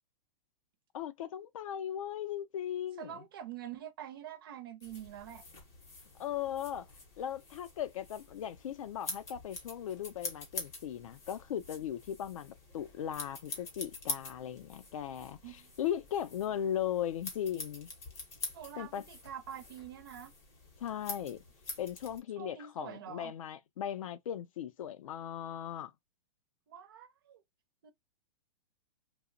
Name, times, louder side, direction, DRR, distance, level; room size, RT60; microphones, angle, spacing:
voice 1, 0.9-3.1 6.2-6.9 7.2-17.9 18.8-19.0 20.8-21.4 21.8-25.9, left 10 dB, 65° left, 0.4 m, -38 dB
voice 2, 3.0-5.4 15.4-15.7 18.5-20.3 22.4-23.3 26.7-27.4 27.8-27.9, right 9 dB, 40° right, 0.4 m, -46 dB
sound 1, 4.8-22.2, left 3 dB, 15° left, 0.6 m, -46 dB
2.8 x 2.0 x 2.5 m
supercardioid pair, 180°, 19 cm